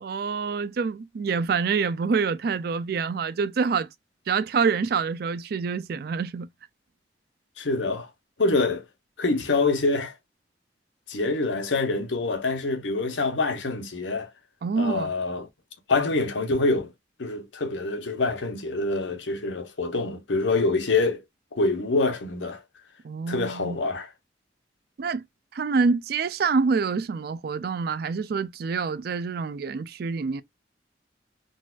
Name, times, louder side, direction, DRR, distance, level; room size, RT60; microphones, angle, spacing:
voice 1, 0.0-3.9 4.3-6.5 14.6-15.1 23.0-23.8 25.0-25.2 25.5-30.4, right 5 dB, 55° right, 0.3 m, -26 dB
voice 2, 7.6-8.1 8.4-8.8 9.2-10.1 11.1-14.3 14.8-15.5 15.9-16.9 17.2-21.2 21.5-22.6 23.3-24.1, left 3 dB, 85° left, 0.9 m, -25 dB
3.9 x 2.4 x 2.3 m
head